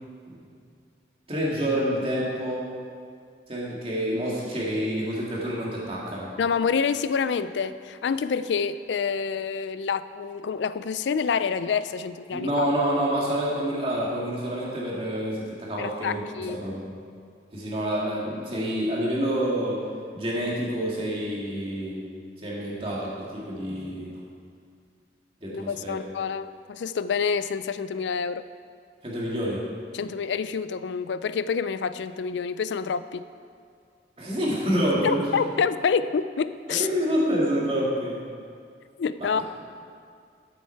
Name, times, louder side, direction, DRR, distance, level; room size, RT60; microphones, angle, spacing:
voice 1, 1.3-2.7 3.5-6.3 12.3-16.8 17.5-19.8 20.1-22.0 22.4-24.1 25.4-26.0 29.0-29.6 34.2-35.5 36.7-38.2 39.2-39.4, equal, 35° right, -5 dB, 2.4 m, -28 dB
voice 2, 6.4-12.7 15.8-16.6 25.5-28.4 29.9-33.2 35.0-36.9 39.0-39.4, left 6 dB, 90° left, 14 dB, 0.4 m, -27 dB
13.0 x 7.8 x 4.6 m, 2.3 s
head